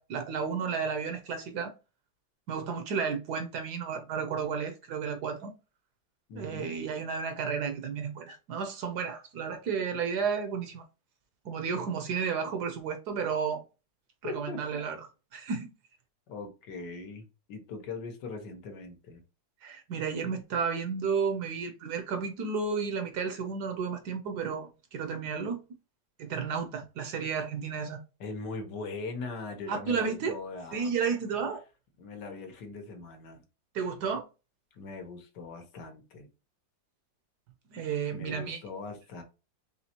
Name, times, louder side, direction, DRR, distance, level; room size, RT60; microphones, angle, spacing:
voice 1, 0.0-1.7 2.5-5.5 6.4-10.8 11.4-13.6 14.2-15.7 19.6-25.6 26.2-28.0 29.7-30.3 30.7-31.6 33.7-34.2 37.7-38.6, right 6 dB, 65° right, 1.1 m, -32 dB
voice 2, 6.3-6.7 14.2-14.8 16.3-19.2 28.2-30.9 32.0-33.4 34.7-36.3 38.1-39.2, left 3 dB, 70° left, 1.5 m, -40 dB
4.3 x 3.2 x 2.8 m
omnidirectional pair, 2.0 m